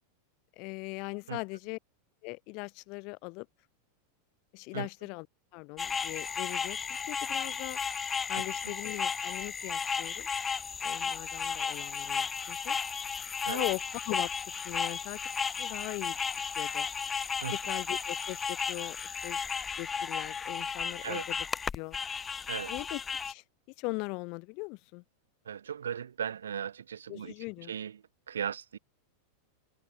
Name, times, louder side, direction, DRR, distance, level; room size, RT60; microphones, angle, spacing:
voice 1, 0.6-1.8 2.2-3.5 4.5-5.3 5.5-6.8 7.1-7.8 8.3-10.3 10.8-12.8 13.5-15.2 15.6-16.2 16.6-16.9 17.5-19.4 19.8-21.5 21.7-22.0 22.7-23.4 23.8-25.0 27.1-27.7, left 30 dB, 50° left, 2.7 m, -40 dB
sound 1, 5.8-23.3, left 6 dB, 20° left, 2.7 m, -34 dB
voice 2, 25.5-27.3 27.7-28.0 28.3-28.8, right 8 dB, 80° right, 2.4 m, -37 dB
hypercardioid pair, 95°, 0 cm